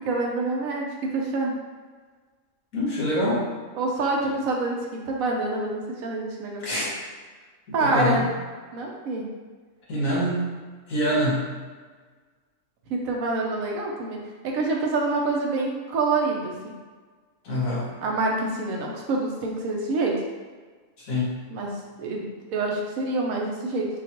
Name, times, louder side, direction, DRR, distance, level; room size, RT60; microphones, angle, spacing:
voice 1, 0.1-0.9 1.1-1.6 3.8-6.6 7.7-8.3 8.7-9.3 12.9-16.7 18.0-20.1 21.5-23.9, right 3 dB, 85° right, -1 dB, 1.1 m, -26 dB
voice 2, 2.7-3.5 6.6-6.9 7.8-8.3 9.9-10.5 10.9-11.4 17.4-17.9 21.0-21.3, left 1 dB, 80° left, -6 dB, 1.6 m, -25 dB
5.2 x 2.3 x 2.9 m, 1.4 s
omnidirectional pair, 1.4 m